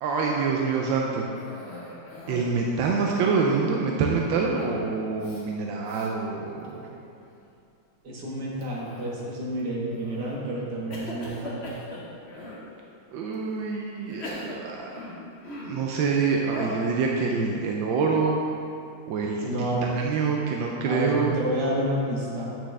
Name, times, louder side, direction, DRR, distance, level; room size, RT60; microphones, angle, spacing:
voice 1, 0.0-1.3 2.3-6.9 13.1-14.9 15.6-18.4 19.1-19.4 19.9-21.3, right 4 dB, 90° right, -1 dB, 1.4 m, -26 dB
Cough, 1.4-2.5 2.9-3.5 4.6-4.9 5.2-5.4 5.9-6.1 6.6-7.1 8.6-9.4 10.0-10.4 10.9-12.7 13.3-13.4 14.1-15.9 16.5-16.9, left 1 dB, 40° left, 1.1 m, -39 dB
voice 2, 8.0-11.6 19.4-19.9 20.8-22.5, right 1 dB, 65° right, -4 dB, 1.9 m, -29 dB
8.5 x 6.2 x 3.3 m, 2.6 s
omnidirectional pair, 2.0 m